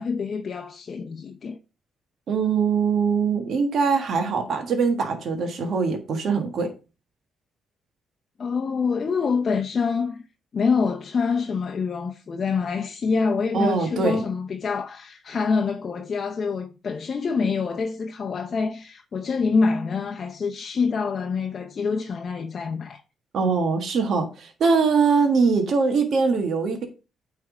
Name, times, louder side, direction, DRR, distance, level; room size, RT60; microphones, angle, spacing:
voice 1, 0.0-1.6 8.4-10.2 10.5-23.0, left 5 dB, 45° left, 0.7 m, -26 dB
voice 2, 2.3-6.7 13.5-14.2 23.3-26.9, right 5 dB, 60° right, 1.4 m, -22 dB
8.6 x 3.6 x 4.9 m
cardioid pair, 90°, 0 cm